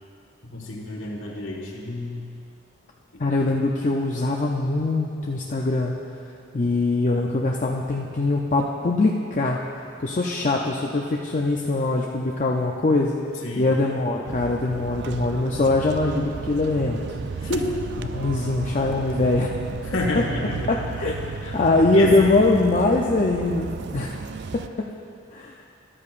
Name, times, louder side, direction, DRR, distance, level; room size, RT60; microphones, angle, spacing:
voice 1, 0.4-2.2 3.1-3.2 13.4-13.7 17.4-17.8 19.8-20.8 21.1-21.6 21.9-22.3, left 2 dB, 75° left, -1 dB, 1.6 m, -29 dB
voice 2, 3.2-6.0 6.5-9.6 10.0-13.1 13.6-17.0 18.1-19.5 20.7-21.2 21.5-24.2 24.5-24.6 25.3-25.5, left 2 dB, 40° left, -1 dB, 0.5 m, -22 dB
sound 1, 14.2-24.7, right 5 dB, 55° right, 0.3 m, -34 dB
13.5 x 12.5 x 2.5 m, 2.5 s
head